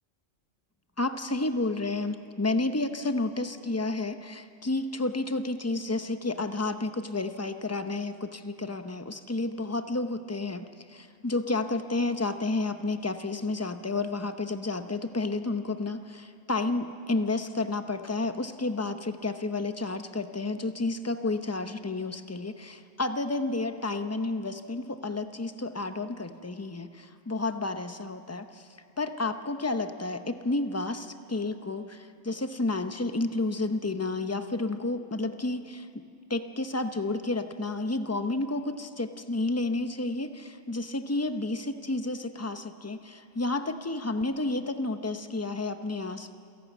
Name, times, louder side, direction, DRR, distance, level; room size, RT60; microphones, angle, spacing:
voice 1, 1.0-28.7 29.0-35.9 36.3-46.4, left 2 dB, 15° left, 8 dB, 0.6 m, -31 dB
28.0 x 11.5 x 8.2 m, 2.3 s
omnidirectional pair, 1.3 m